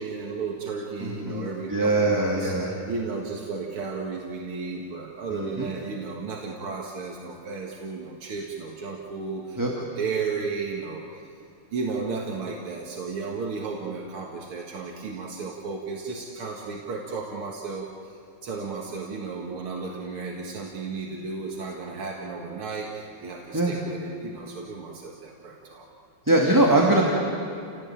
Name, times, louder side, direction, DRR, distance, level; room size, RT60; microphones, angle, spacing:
voice 1, 0.0-2.6 2.9-11.3 11.7-25.9, right 4 dB, 85° right, -1 dB, 2.7 m, -34 dB
voice 2, 1.0-2.7 5.3-5.7 9.6-9.7 23.5-23.8 26.3-27.0, right 2 dB, 10° right, -1 dB, 2.1 m, -22 dB
28.5 x 18.0 x 9.0 m, 2.6 s
omnidirectional pair, 2.3 m